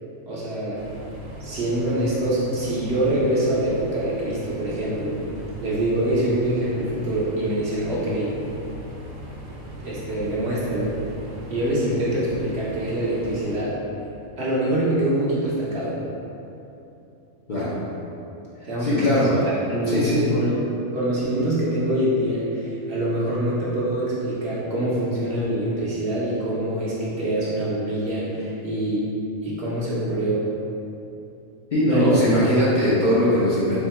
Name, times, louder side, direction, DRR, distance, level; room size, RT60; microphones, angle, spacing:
voice 1, 0.3-0.9 1.4-5.2 5.6-8.3 9.8-11.0 11.5-13.8 14.4-16.0 18.6-19.1 19.3-20.6 20.9-29.1 29.4-30.5 31.9-32.2, right 1 dB, 60° right, -7 dB, 0.8 m, -25 dB
sound 1, 0.7-13.6, right 1 dB, 85° right, 1.0 m, -38 dB
voice 2, 18.8-19.4 19.9-20.3 31.7-33.9, equal, 45° left, -10 dB, 0.7 m, -20 dB
3.5 x 2.4 x 4.1 m, 2.9 s
omnidirectional pair, 1.4 m